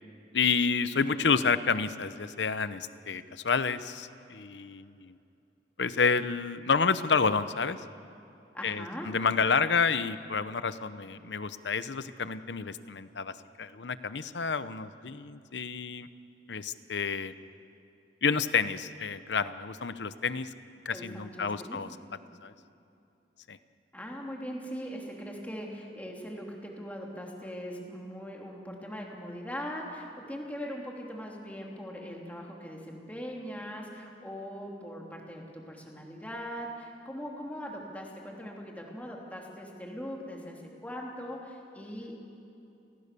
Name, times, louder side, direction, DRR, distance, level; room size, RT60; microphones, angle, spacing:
voice 1, 0.3-5.2 5.8-7.8 8.6-13.3 13.6-16.1 16.5-17.3 18.2-20.5 20.8-21.9 22.4-22.5 23.5-23.6, left 5 dB, 85° left, 13 dB, 0.8 m, -29 dB
voice 2, 8.5-9.1 20.9-21.9 23.9-42.1, equal, 10° left, -1 dB, 3.1 m, -40 dB
30.0 x 18.0 x 6.9 m, 2.7 s
head